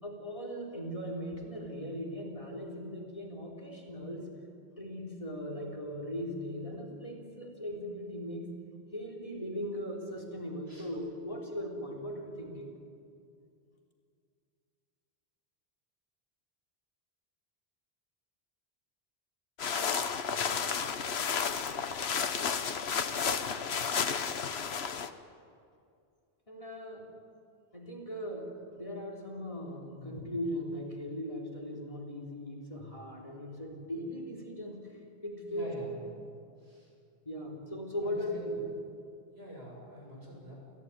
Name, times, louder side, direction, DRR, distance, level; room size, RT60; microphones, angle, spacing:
voice 1, 0.0-4.3 4.8-8.5 8.9-12.7 26.5-27.1 27.7-35.7 37.2-38.6, equal, 35° left, 1 dB, 3.7 m, -39 dB
sound 1, 19.6-25.1, left 6 dB, 85° left, 1.3 m, -32 dB
voice 2, 29.9-30.3 35.5-35.9 36.6-36.9 38.0-38.4 39.3-40.5, equal, 80° right, -2 dB, 7.5 m, -46 dB
29.0 x 15.5 x 9.8 m, 2.4 s
omnidirectional pair, 1.0 m